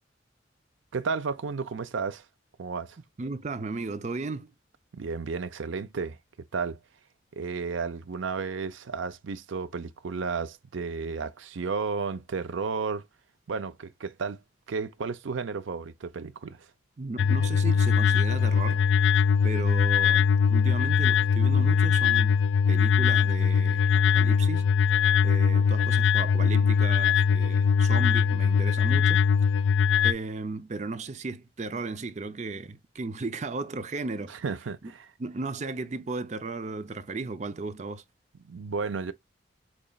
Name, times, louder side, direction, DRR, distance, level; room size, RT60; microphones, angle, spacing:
voice 1, 0.9-2.3 2.6-3.0 4.9-6.2 6.5-6.8 7.3-13.1 13.5-14.4 14.7-16.7 34.3-35.1 38.4-39.1, right 5 dB, 85° right, 0.5 m, -33 dB
voice 2, 3.2-4.5 17.0-18.9 19.4-22.4 22.7-24.7 25.2-29.3 30.0-34.3 35.2-38.0, right 3 dB, 35° right, 0.5 m, -35 dB
sound 1, 17.2-30.1, left 6 dB, 75° left, 0.3 m, -22 dB
5.2 x 2.9 x 2.3 m
head